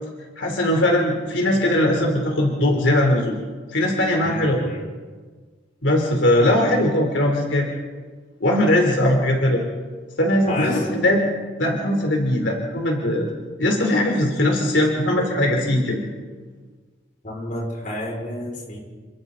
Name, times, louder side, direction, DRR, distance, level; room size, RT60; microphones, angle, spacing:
voice 1, 0.4-3.3 3.7-4.7 5.8-7.7 8.4-9.6 10.2-11.3 11.6-13.3 13.6-16.0, left 1 dB, 85° left, 0 dB, 3.8 m, -20 dB
voice 2, 4.2-4.9 10.5-11.0 17.2-18.8, left 1 dB, 45° left, -2 dB, 6.2 m, -30 dB
29.0 x 25.0 x 4.2 m, 1.5 s
head